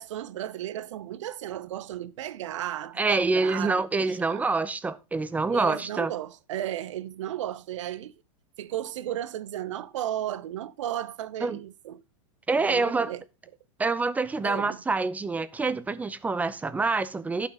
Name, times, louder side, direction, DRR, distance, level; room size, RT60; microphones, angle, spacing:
voice 1, 0.0-4.4 5.5-8.1 8.6-12.0 12.5-13.2 14.4-14.8, right 12 dB, 75° right, 0.8 m, -34 dB
voice 2, 3.0-6.1 11.4-11.6 12.5-13.1 13.8-17.5, right 3 dB, 10° right, 0.6 m, -26 dB
11.5 x 5.8 x 4.9 m
hypercardioid pair, 130°, 16 cm